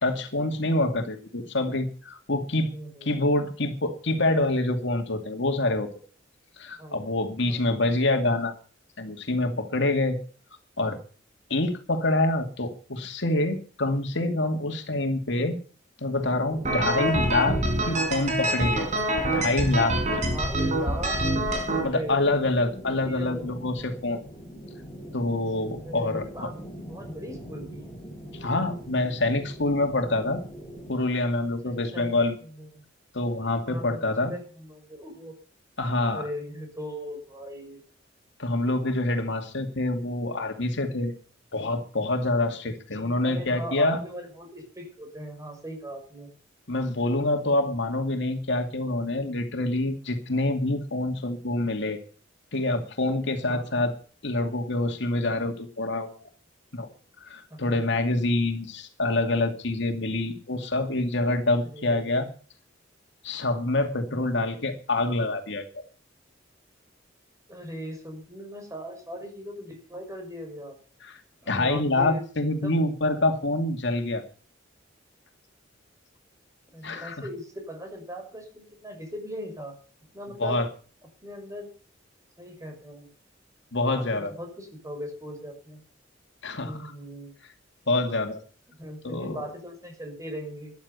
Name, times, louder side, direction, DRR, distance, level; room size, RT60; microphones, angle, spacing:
voice 1, 0.0-2.7 3.0-5.9 6.6-8.5 9.0-10.2 10.8-11.0 11.5-15.6 16.0-17.6 17.9-18.9 19.3-20.2 21.8-24.2 25.1-26.2 28.4-30.4 30.9-32.4 33.1-34.3 35.8-36.2 38.4-41.1 41.5-44.0 46.7-52.0 52.5-53.9 54.2-56.2 56.7-56.9 57.2-62.3 63.2-65.6 71.0-71.2 71.5-74.2 76.8-77.3 80.4-80.7 83.7-84.3 86.4-86.9 87.9-88.4 89.0-89.4, left 2 dB, 65° left, 5 dB, 2.4 m, -26 dB
voice 2, 2.7-3.1 6.8-7.0 7.5-7.8 13.0-13.1 17.0-17.2 20.1-21.2 21.5-22.4 22.9-23.5 25.8-27.9 31.6-32.2 32.6-32.8 33.7-35.3 36.1-37.8 39.7-39.9 43.0-46.3 53.5-53.9 57.5-57.9 61.7-62.1 64.1-64.2 67.5-70.8 71.4-72.2 72.6-72.8 76.7-79.8 80.1-80.6 81.2-81.7 82.4-83.1 83.9-85.8 86.6-87.3 88.8-90.7, equal, 15° right, 4 dB, 6.1 m, -39 dB
sound 1, 16.1-30.9, equal, 20° left, 5.5 m, -43 dB
sound 2, 16.6-21.8, right 1 dB, 40° right, 4.9 m, -26 dB
13.5 x 11.5 x 6.9 m, 0.39 s
head